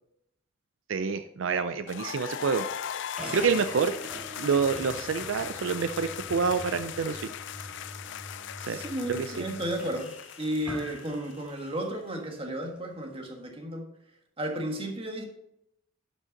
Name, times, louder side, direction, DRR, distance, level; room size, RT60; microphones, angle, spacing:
voice 1, 0.9-2.6 3.1-3.9 4.4-7.3 8.6-8.8 9.1-9.4, right 5 dB, 75° right, 10 dB, 0.5 m, -27 dB
sound 1, 1.9-11.6, left 10 dB, 65° left, 0.4 m, -39 dB
sound 2, 3.2-11.9, equal, 5° right, 1.9 m, -44 dB
voice 2, 3.2-3.6 8.6-10.1 10.4-13.9 14.4-15.3, right 1 dB, 30° right, 2 dB, 1.5 m, -33 dB
11.5 x 5.5 x 3.9 m, 0.79 s
head